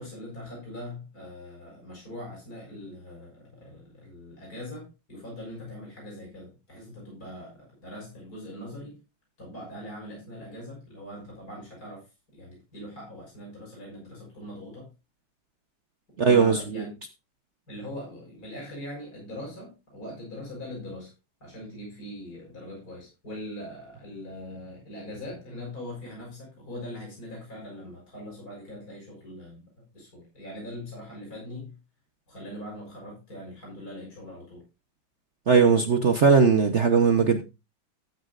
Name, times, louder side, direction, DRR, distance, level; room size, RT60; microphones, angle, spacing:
voice 1, 0.0-9.0 9.4-12.1 12.3-14.9 16.1-16.9 17.7-21.1 21.4-31.8 32.3-34.6, left 1 dB, 50° left, 6.6 m, -41 dB
voice 2, 16.2-16.6 35.5-37.4, right 5 dB, 45° right, 1.0 m, -19 dB
13.5 x 9.5 x 2.5 m
omnidirectional pair, 2.1 m